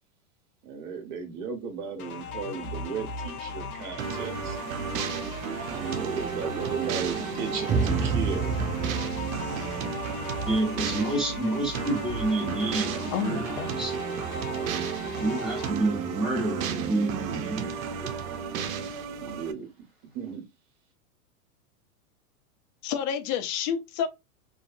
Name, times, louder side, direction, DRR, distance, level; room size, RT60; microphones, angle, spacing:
voice 1, 0.6-4.6 5.6-8.5 19.1-19.7 20.1-20.4, right 6 dB, 50° right, 1.2 m, -35 dB
sound 1, 2.0-15.7, left 3 dB, 80° left, 0.8 m, -39 dB
sound 2, 4.0-19.5, right 7 dB, 70° right, 0.6 m, -33 dB
sound 3, 7.7-10.9, right 4 dB, 15° right, 0.5 m, -29 dB
voice 2, 10.4-14.0 15.1-17.8, right 2 dB, ahead, 1.5 m, -28 dB
voice 3, 13.1-13.8 22.8-24.1, left 8 dB, 35° left, 0.4 m, -29 dB
2.6 x 2.4 x 2.5 m
hypercardioid pair, 110°, 43 cm